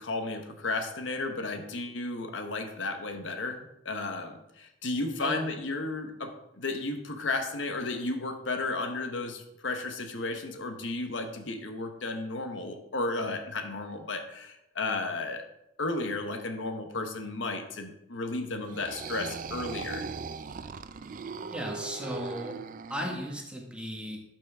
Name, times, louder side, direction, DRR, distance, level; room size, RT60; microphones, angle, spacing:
voice 1, 0.0-15.4 15.8-20.1, left 2 dB, 80° left, 5 dB, 1.0 m, -33 dB
sound 1, 18.6-23.4, right 5 dB, 45° right, 0.4 m, -39 dB
voice 2, 21.4-22.5 22.9-24.2, equal, 5° right, 0 dB, 1.5 m, -36 dB
12.0 x 6.0 x 3.5 m, 0.85 s
head